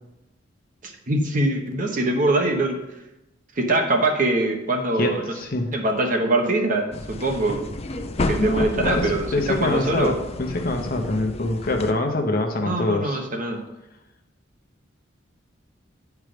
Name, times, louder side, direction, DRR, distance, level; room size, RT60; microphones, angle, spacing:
voice 1, 0.8-2.8 3.6-5.2 5.7-7.7 8.3-10.1 12.6-13.7, right 2 dB, 45° right, 2 dB, 1.2 m, -23 dB
voice 2, 5.0-5.7 8.4-13.2, left 2 dB, 50° left, 3 dB, 1.0 m, -25 dB
sound 1, 6.9-11.9, left 2 dB, 35° left, 0.5 m, -30 dB
9.0 x 4.7 x 5.1 m, 0.93 s
head